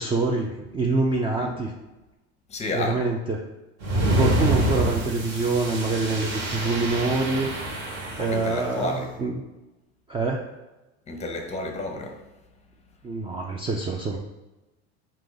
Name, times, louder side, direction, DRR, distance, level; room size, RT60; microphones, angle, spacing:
voice 1, 0.0-1.7 2.7-3.4 4.0-7.5 8.2-9.3 10.1-10.5 13.0-14.2, right 3 dB, 15° right, 0.3 m, -26 dB
voice 2, 2.5-3.0 8.2-9.1 11.1-12.2, left 2 dB, 20° left, 0.7 m, -31 dB
sound 1, 3.8-8.7, right 1 dB, 60° right, 1.4 m, -26 dB
4.8 x 2.8 x 3.9 m
supercardioid pair, 125°, 33 cm